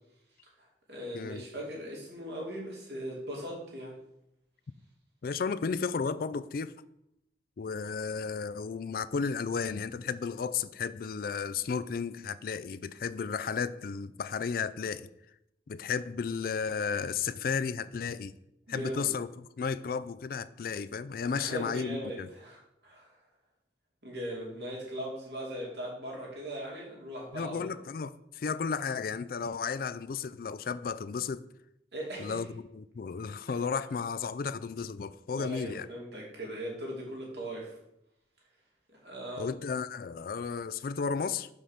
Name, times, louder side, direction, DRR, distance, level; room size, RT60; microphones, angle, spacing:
voice 1, 0.6-4.0 18.7-19.1 21.3-23.2 24.0-27.8 31.9-32.4 33.5-33.6 35.3-37.8 38.9-39.5, equal, 70° right, 2.6 m, -39 dB
voice 2, 5.2-6.7 7.6-15.1 15.7-18.3 18.7-22.3 27.3-31.5 32.2-35.9 39.4-41.5, left 5 dB, 55° left, 0.4 m, -33 dB
6.4 x 5.3 x 5.7 m
head